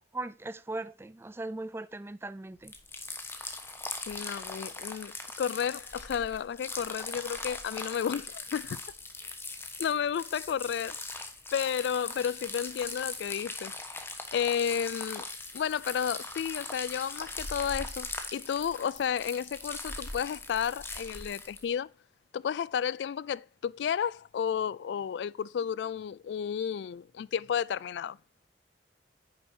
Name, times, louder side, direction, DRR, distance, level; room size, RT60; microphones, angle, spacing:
voice 1, 0.1-2.7, right 2 dB, 15° right, 0.3 m, -38 dB
sound 1, 2.6-21.6, left 3 dB, 15° left, 1.1 m, -40 dB
voice 2, 4.1-8.8 9.8-11.0 11.5-13.7 14.3-15.3 15.5-21.9 22.3-28.2, left 8 dB, 70° left, 0.3 m, -32 dB
9.6 x 6.7 x 2.7 m
head